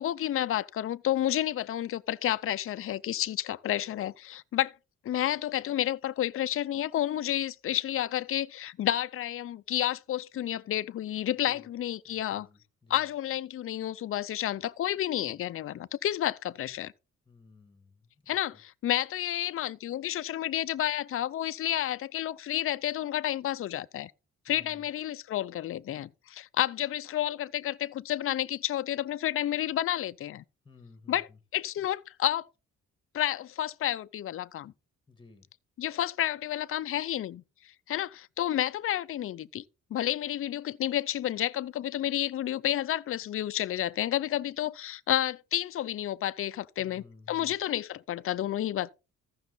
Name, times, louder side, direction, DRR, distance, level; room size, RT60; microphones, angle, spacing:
voice 1, 0.0-4.7 5.0-12.5 12.9-16.9 18.3-24.1 24.5-30.4 31.1-31.3 31.5-32.5 33.1-34.7 35.8-37.4 37.9-39.6 39.9-48.9, left 12 dB, 45° left, 0.5 m, -30 dB
voice 2, 12.0-13.1 17.3-18.1 24.5-24.9 30.6-31.4 35.1-35.5 46.8-47.5, left 3 dB, 15° left, 1.7 m, -54 dB
14.5 x 6.3 x 3.9 m
cardioid pair, 125°, 30 cm